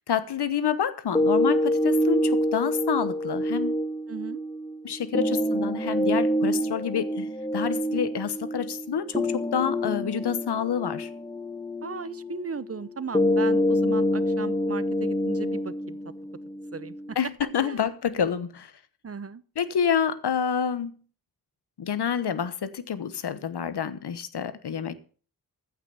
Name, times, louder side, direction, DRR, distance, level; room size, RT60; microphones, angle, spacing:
voice 1, 0.1-3.8 4.8-11.1 17.2-18.7 19.6-21.0 21.8-25.0, left 8 dB, 85° left, 1.1 m, -28 dB
sound 1, 1.1-17.1, equal, 10° left, 0.9 m, -27 dB
voice 2, 4.1-4.4 11.8-16.0 16.7-17.2 17.6-17.9 19.0-19.4, right 5 dB, 40° right, 0.8 m, -37 dB
15.0 x 6.0 x 6.9 m
wide cardioid pair, 70°, 39 cm